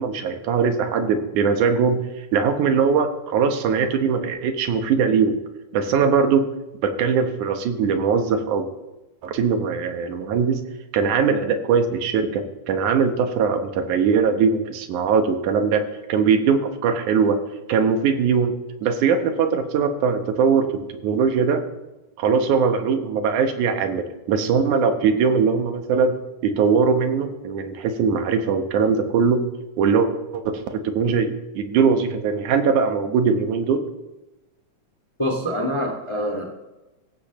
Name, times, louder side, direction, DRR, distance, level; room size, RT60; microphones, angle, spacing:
voice 1, 0.0-5.4 5.7-6.5 6.8-8.7 9.2-10.6 10.9-17.4 17.7-18.5 18.8-21.6 22.2-29.5 29.8-33.8, right 6 dB, 75° right, 6 dB, 2.6 m, -21 dB
voice 2, 35.2-36.4, equal, 15° left, 1 dB, 1.2 m, -25 dB
18.0 x 15.5 x 3.1 m, 1.1 s
omnidirectional pair, 3.6 m